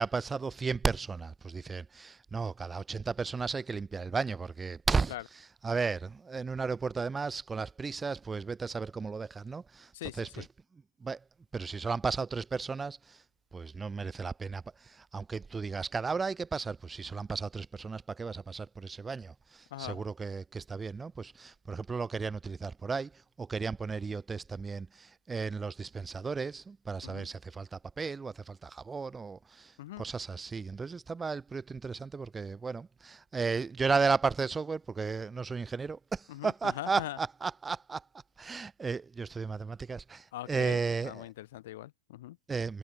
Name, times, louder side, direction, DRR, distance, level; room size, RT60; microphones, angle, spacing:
voice 1, 0.0-5.1 5.6-9.9 10.2-10.4 11.0-11.2 11.5-13.2 13.5-29.7 30.0-38.0 38.4-41.3 42.5-42.8, right 4 dB, 15° right, 0.3 m, -34 dB
voice 2, 9.9-10.5 19.7-20.0 27.0-27.3 29.8-30.0 36.3-37.2 40.3-42.4, left 15 dB, 55° left, 0.6 m, -42 dB
figure-of-eight pair, 90°, 0 cm